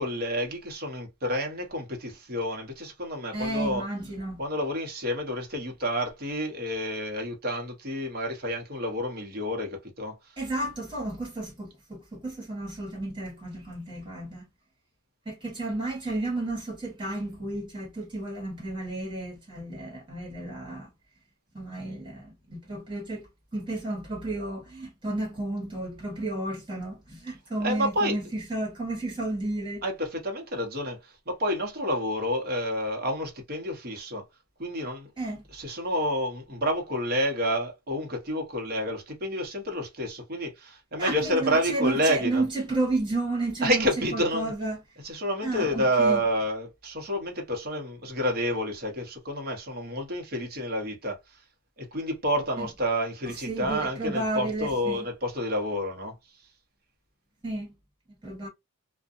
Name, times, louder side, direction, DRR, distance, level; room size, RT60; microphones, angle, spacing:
voice 1, 0.0-3.8 4.4-10.2 27.6-28.2 29.8-31.0 31.3-34.2 34.6-35.1 35.5-42.4 43.6-44.5 45.0-51.2 51.9-56.1, equal, 45° right, 0.9 m, -29 dB
voice 2, 3.3-4.4 10.4-14.4 15.2-20.9 21.5-23.3 23.5-29.8 35.2-35.4 41.0-44.8 45.4-46.2 52.6-52.7 53.2-55.0 57.4-57.7 58.2-58.5, right 2 dB, 20° right, 1.4 m, -32 dB
2.6 x 2.2 x 2.4 m
head